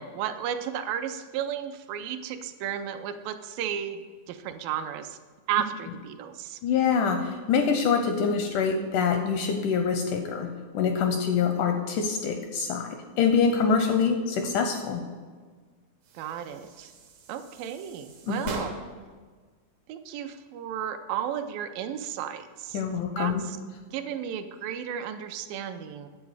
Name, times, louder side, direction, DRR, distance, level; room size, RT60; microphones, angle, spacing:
voice 1, 0.0-5.2 5.5-6.6 16.2-16.9 17.3-18.8 19.9-22.8 23.2-23.6 23.9-26.1, right 9 dB, 80° right, 9 dB, 2.2 m, -33 dB
voice 2, 6.6-12.9 13.2-15.0 18.3-18.5 22.7-23.4, left 6 dB, 85° left, 5 dB, 1.9 m, -25 dB
sound 1, 16.0-19.1, right 3 dB, 60° right, 1.8 m, -41 dB
8.9 x 7.3 x 4.7 m, 1.5 s
omnidirectional pair, 4.2 m